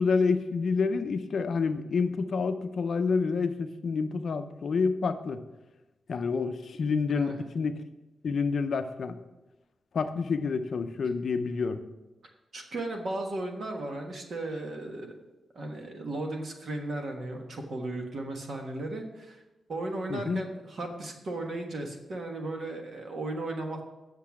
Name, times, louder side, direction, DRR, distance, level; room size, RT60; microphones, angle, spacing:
voice 1, 0.0-5.4 6.1-7.7 8.2-9.2 9.9-11.8 20.1-20.4, left 5 dB, 50° left, 9 dB, 0.6 m, -28 dB
voice 2, 7.1-7.4 12.5-15.1 15.5-19.4 19.7-23.8, right 2 dB, 45° right, 3 dB, 1.3 m, -35 dB
8.4 x 6.6 x 5.8 m, 1.1 s
wide cardioid pair, 180°, 0 cm